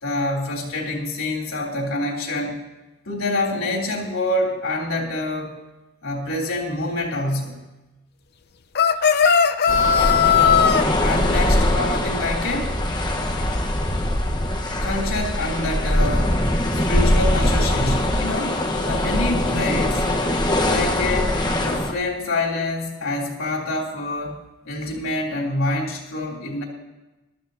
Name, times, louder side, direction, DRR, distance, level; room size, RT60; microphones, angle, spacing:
voice 1, 0.0-2.6 3.0-5.6 6.0-7.6 11.0-12.7 14.8-16.4 16.7-20.0 20.6-24.4 24.6-26.6, left 2 dB, 90° left, -2 dB, 3.2 m, -26 dB
sound 1, 8.7-10.8, left 7 dB, 50° left, 0.7 m, -17 dB
sound 2, 9.7-21.9, left 1 dB, 20° left, 1.2 m, -22 dB
23.5 x 13.0 x 2.8 m, 1.1 s
head